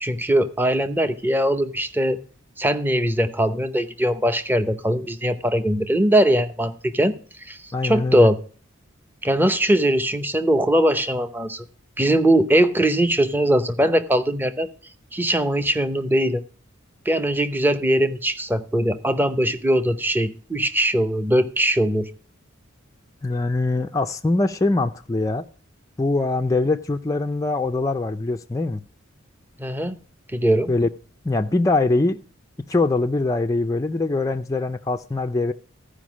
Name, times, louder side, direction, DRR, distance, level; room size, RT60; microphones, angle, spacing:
voice 1, 0.0-2.2 2.6-7.1 7.5-7.6 7.8-8.4 9.2-11.6 12.0-14.7 15.1-16.4 17.1-22.1 29.6-30.0 30.3-30.7, right 1 dB, 10° right, 0.8 m, -21 dB
voice 2, 7.7-8.3 23.2-25.4 26.0-28.8 30.7-30.9 31.2-32.2 32.7-35.5, left 2 dB, 15° left, 0.4 m, -22 dB
14.5 x 5.1 x 6.1 m
head